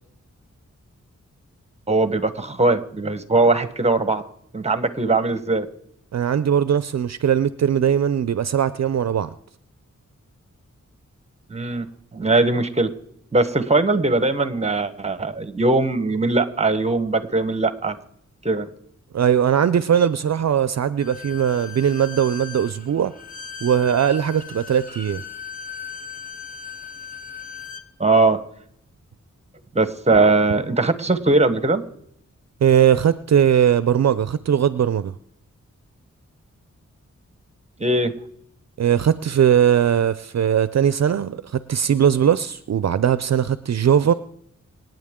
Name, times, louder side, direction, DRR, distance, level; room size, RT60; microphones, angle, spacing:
voice 1, 1.9-4.2 4.5-5.7 11.5-11.8 12.1-12.9 13.3-18.0 18.4-18.7 28.0-28.4 29.7-31.8 37.8-38.1, right 2 dB, 20° right, 12 dB, 1.0 m, -20 dB
voice 2, 6.1-9.3 19.1-23.1 23.6-25.2 32.6-35.1 38.8-44.1, right 9 dB, 60° right, 14 dB, 0.5 m, -19 dB
Bowed string instrument, 21.0-27.9, left 6 dB, 25° left, 1.4 m, -38 dB
26.5 x 9.2 x 3.7 m, 0.71 s
wide cardioid pair, 115°, 30 cm